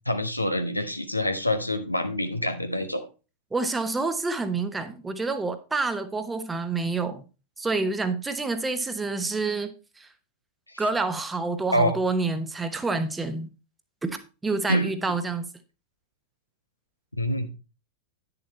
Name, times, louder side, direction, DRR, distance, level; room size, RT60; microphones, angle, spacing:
voice 1, 0.0-3.0 11.7-11.9 14.7-14.9 17.2-17.5, equal, 85° left, 1.1 m, -26 dB
voice 2, 3.5-7.2 7.6-10.1 10.8-13.5 14.0-14.2 14.4-15.5, right 3 dB, 10° right, 1.2 m, -28 dB
10.0 x 6.9 x 4.2 m
figure-of-eight pair, 90°, 0 cm